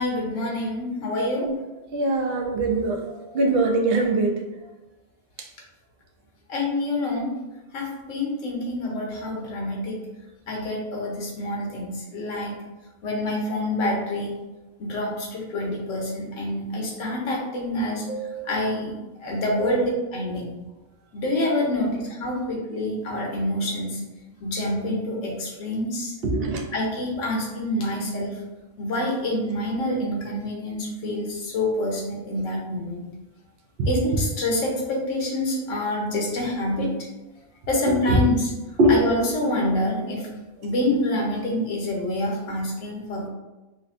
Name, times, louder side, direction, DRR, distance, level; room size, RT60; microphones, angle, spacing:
voice 1, 0.0-1.5 6.5-7.3 7.7-10.0 10.5-12.6 13.0-14.4 14.8-18.0 18.4-18.9 19.2-20.5 21.1-24.0 24.4-26.1 26.7-28.4 28.8-33.1 33.8-36.9 37.7-38.5 38.9-40.3 40.6-43.3, left 1 dB, 90° left, -2 dB, 1.2 m, -27 dB
voice 2, 1.9-3.0 3.3-4.4 18.1-18.5 19.6-19.7 26.2-26.6 33.8-33.9 38.1-38.2 38.8-39.0, right 2 dB, 60° right, 1 dB, 0.8 m, -22 dB
5.1 x 2.1 x 2.5 m, 1.1 s
omnidirectional pair, 1.3 m